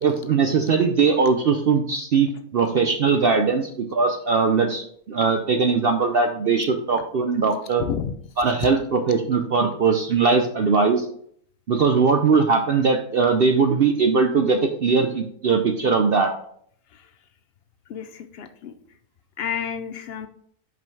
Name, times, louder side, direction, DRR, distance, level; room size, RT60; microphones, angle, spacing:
voice 1, 0.0-7.9 8.4-11.1 11.7-16.3, right 5 dB, 60° right, 5 dB, 0.6 m, -20 dB
voice 2, 18.4-18.7 19.4-20.3, left 8 dB, 70° left, 9 dB, 0.5 m, -29 dB
5.5 x 5.1 x 4.6 m, 0.65 s
omnidirectional pair, 1.6 m